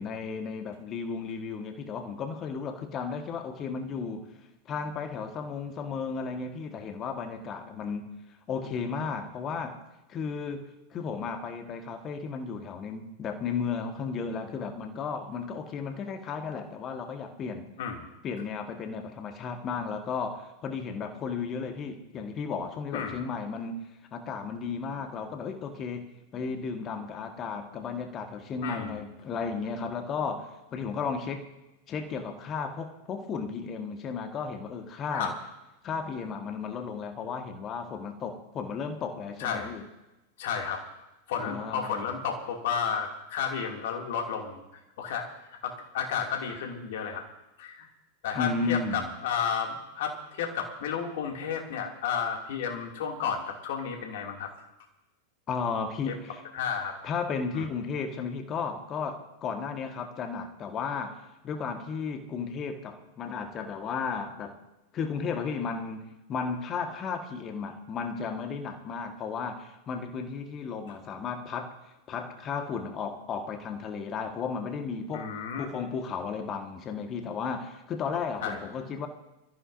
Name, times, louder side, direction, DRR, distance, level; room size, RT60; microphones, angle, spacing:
voice 1, 0.0-4.3 4.6-8.1 8.5-9.8 10.1-10.6 10.9-17.7 18.2-23.8 24.1-31.4 31.9-35.4 35.8-39.8 41.4-42.0 48.3-49.1 55.5-56.4 57.0-64.6 64.9-71.8 72.1-79.1, left 5 dB, 30° left, 6 dB, 1.6 m, -34 dB
voice 2, 28.6-29.0 35.1-35.3 39.4-39.7 40.4-40.8 41.3-44.6 45.0-45.3 45.6-47.2 47.6-47.9 48.2-54.5 56.1-56.2 56.5-57.0 57.5-57.7 75.1-75.6 78.4-78.6, left 7 dB, 55° left, 2 dB, 2.6 m, -32 dB
24.5 x 14.0 x 2.7 m, 0.97 s
figure-of-eight pair, 90°, 0 cm